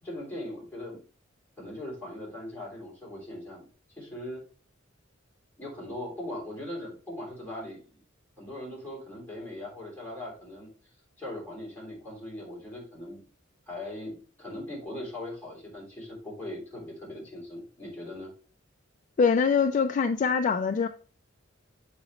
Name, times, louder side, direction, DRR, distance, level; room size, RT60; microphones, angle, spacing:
voice 1, 0.0-1.0 1.6-3.7 4.0-4.4 5.6-8.0 8.4-10.7 11.2-13.2 13.7-18.3, left 1 dB, 10° left, 3.3 m, -40 dB
voice 2, 19.2-20.9, left 5 dB, 40° left, 0.3 m, -23 dB
7.0 x 4.9 x 3.0 m
head